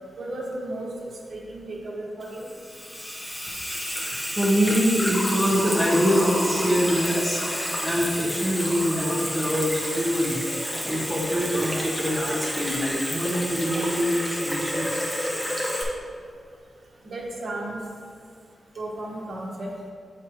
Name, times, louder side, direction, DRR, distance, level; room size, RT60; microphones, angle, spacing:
voice 1, 0.2-2.5 17.0-17.8 18.8-19.7, right 1 dB, 50° right, -4 dB, 1.1 m, -34 dB
Water tap faucet / Sink (filling or washing), 2.2-15.8, equal, 15° left, 0.8 m, -29 dB
voice 2, 4.4-7.4 7.8-10.4 10.8-15.0, equal, 10° right, -5 dB, 1.0 m, -24 dB
7.8 x 4.9 x 3.1 m, 2.2 s
wide cardioid pair, 175°, 0 cm